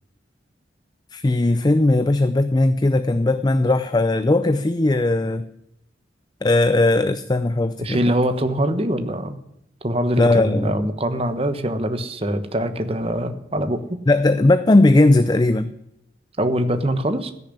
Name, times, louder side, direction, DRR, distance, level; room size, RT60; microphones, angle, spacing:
voice 1, 1.1-5.5 6.4-8.0 10.2-10.7 14.1-15.7, left 2 dB, 20° left, 11 dB, 0.4 m, -18 dB
voice 2, 7.8-9.4 9.8-14.0 16.4-17.3, right 1 dB, 30° right, 9 dB, 1.2 m, -23 dB
15.0 x 7.0 x 10.0 m, 0.81 s
head